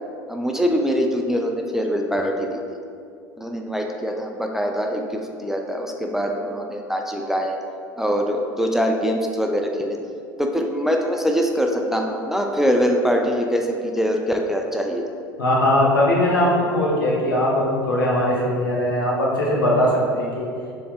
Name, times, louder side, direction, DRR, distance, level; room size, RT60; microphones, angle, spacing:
voice 1, 0.3-2.6 3.4-7.6 8.0-10.0 10.4-15.1, equal, 5° right, 2 dB, 0.4 m, -23 dB
voice 2, 15.4-20.5, left 1 dB, 80° left, -4 dB, 0.9 m, -20 dB
6.8 x 3.1 x 2.4 m, 2.4 s
figure-of-eight pair, 70°, 11 cm